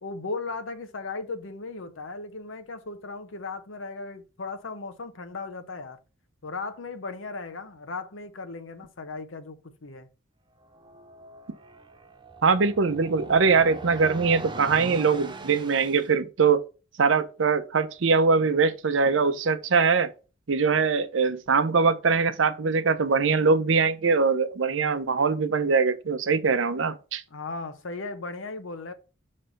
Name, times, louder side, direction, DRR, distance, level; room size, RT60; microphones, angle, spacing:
voice 1, 0.0-6.0 6.4-10.1 27.3-28.9, left 3 dB, 85° left, 0.9 m, -36 dB
sound 1, 10.6-16.1, right 2 dB, 25° right, 0.6 m, -41 dB
voice 2, 12.4-16.6 17.0-20.1 20.5-27.2, right 5 dB, 75° right, 0.6 m, -22 dB
5.6 x 3.3 x 5.1 m
head